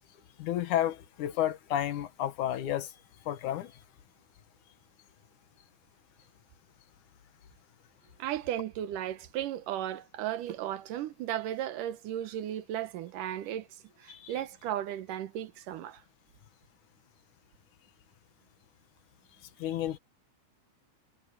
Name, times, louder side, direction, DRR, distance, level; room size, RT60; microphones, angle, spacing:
voice 1, 0.4-3.0 3.3-3.8 14.1-14.3 19.4-20.0, left 12 dB, 75° left, 2.6 m, -32 dB
voice 2, 8.2-13.7 14.0-16.0, right 11 dB, 85° right, 2.7 m, -35 dB
omnidirectional pair, 3.6 m